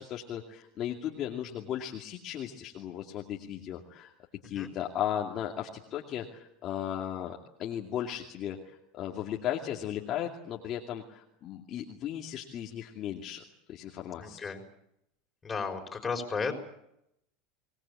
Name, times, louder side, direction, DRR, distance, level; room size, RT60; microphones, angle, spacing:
voice 1, 0.0-4.1 4.4-13.4 13.7-14.4, left 10 dB, 40° left, 0 dB, 2.5 m, -36 dB
voice 2, 14.2-14.6 15.4-16.5, left 5 dB, 20° left, 3 dB, 5.7 m, -34 dB
25.0 x 20.0 x 8.6 m, 0.79 s
supercardioid pair, 120°, 0 cm